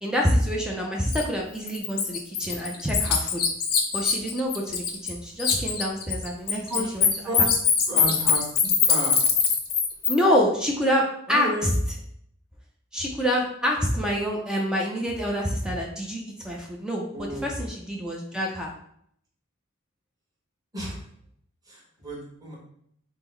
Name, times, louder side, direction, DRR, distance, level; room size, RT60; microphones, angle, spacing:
voice 1, 0.0-3.4 3.9-7.1 7.4-7.5 10.1-11.7 12.9-18.7, equal, 5° right, -2 dB, 0.4 m, -26 dB
Bird, 1.1-1.2 1.7-5.1 5.4-10.1, left 6 dB, 45° left, 0.6 m, -22 dB
voice 2, 6.5-7.5 7.9-8.4 8.9-9.2 11.3-11.7 17.1-17.5 18.3-18.4 20.7-21.0 21.7-22.6, right 1 dB, 20° right, -5 dB, 1.3 m, -32 dB
3.7 x 2.0 x 4.3 m, 0.70 s
head